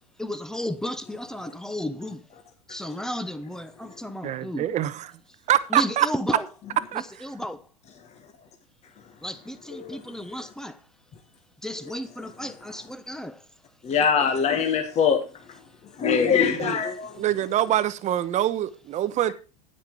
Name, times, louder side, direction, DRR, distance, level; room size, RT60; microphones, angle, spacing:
voice 1, 0.2-2.2 2.7-4.7 5.7-6.5 6.9-7.6 9.2-10.8 11.6-13.4, equal, 5° left, 1.0 m, -33 dB
voice 2, 4.2-5.0 5.5-6.1 6.9-7.0 16.1-16.8 17.2-19.3, right 12 dB, 35° right, 1.0 m, -25 dB
voice 3, 13.8-15.2 16.0-17.2, left 7 dB, 30° left, 1.6 m, -23 dB
9.7 x 9.1 x 4.7 m
hypercardioid pair, 105°, 21 cm